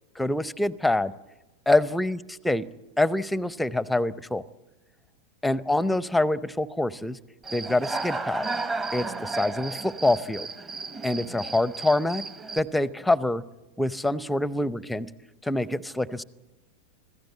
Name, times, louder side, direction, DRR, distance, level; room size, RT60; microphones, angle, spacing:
voice 1, 0.2-1.1 1.7-2.2 2.4-2.7 3.0-4.4 5.4-7.2 7.5-8.5 8.9-10.5 11.0-12.2 12.6-13.4 13.8-15.1 15.4-16.2, left 2 dB, 5° left, 19 dB, 0.7 m, -25 dB
Human voice / Cricket, 7.4-12.6, right 3 dB, 20° right, 1.0 m, -33 dB
25.5 x 16.0 x 8.4 m, 1.1 s
figure-of-eight pair, 90°, 0 cm